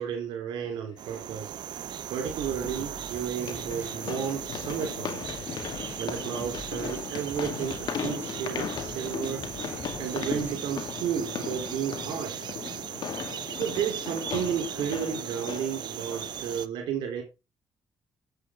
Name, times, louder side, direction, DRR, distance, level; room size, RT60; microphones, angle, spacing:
voice 1, 0.0-1.5 2.1-5.3 6.0-9.7 10.0-12.5 13.5-17.2, right 8 dB, 90° right, 3.5 m, -32 dB
sound 1, 0.7-0.8 2.6-16.5, left 8 dB, 65° left, 2.1 m, -37 dB
sound 2, 1.0-16.7, right 10 dB, 70° right, 0.8 m, -38 dB
sound 3, 2.2-10.6, right 2 dB, 25° right, 4.7 m, -47 dB
8.3 x 8.3 x 3.7 m
cardioid pair, 75°, 8 cm